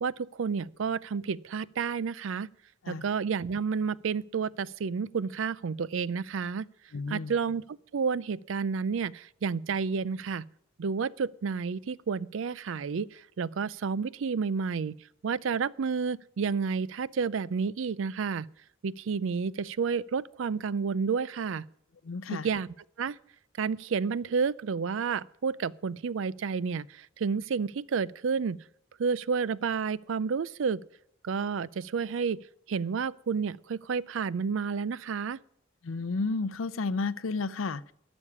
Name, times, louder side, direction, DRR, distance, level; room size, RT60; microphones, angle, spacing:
voice 1, 0.0-2.5 2.9-6.7 7.1-7.6 7.9-10.4 10.8-15.0 15.2-18.5 18.8-21.7 22.3-22.7 23.0-23.2 23.6-28.6 29.0-30.8 31.2-32.4 32.7-35.4, right 5 dB, 70° right, 0.4 m, -30 dB
voice 2, 6.9-7.3 22.0-22.5 35.8-37.9, left 3 dB, 80° left, 0.6 m, -32 dB
12.0 x 7.1 x 9.7 m
head